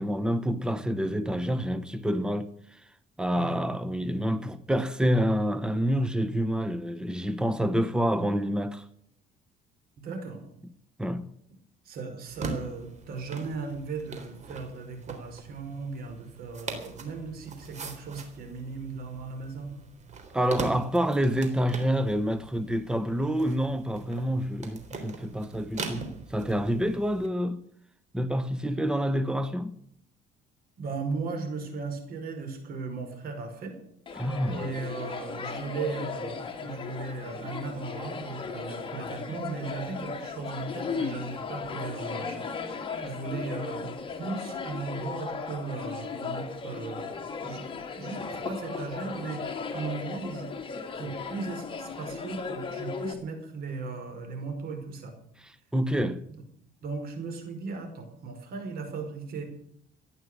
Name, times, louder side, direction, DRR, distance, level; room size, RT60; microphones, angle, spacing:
voice 1, 0.0-2.8 3.2-8.9 11.0-11.3 20.3-26.0 26.3-27.6 28.1-29.8 34.2-34.7 55.4-56.2, equal, 5° right, 1.1 m, -28 dB
voice 2, 3.3-3.9 10.0-10.4 11.9-19.7 30.8-33.8 34.5-42.7 43.0-47.1 47.4-47.7 47.9-50.5 51.0-55.1 56.8-59.4, right 4 dB, 60° right, 5.2 m, -37 dB
sound 1, 12.3-27.3, right 4 dB, 45° right, 3.7 m, -41 dB
sound 2, 34.1-53.1, left 5 dB, 30° left, 2.6 m, -36 dB
15.0 x 10.5 x 8.2 m
cardioid pair, 110°, 17 cm